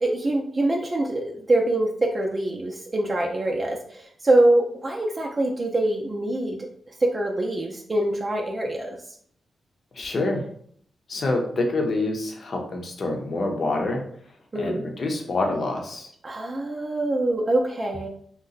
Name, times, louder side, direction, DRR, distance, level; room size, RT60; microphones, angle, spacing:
voice 1, 0.0-6.6 7.0-9.0 14.5-14.8 16.2-18.1, right 1 dB, 35° right, 0 dB, 0.6 m, -24 dB
voice 2, 9.9-10.4 11.1-14.0 14.5-16.1, left 2 dB, 60° left, 2 dB, 0.8 m, -26 dB
2.8 x 2.2 x 3.9 m, 0.63 s
cardioid pair, 55°, 0 cm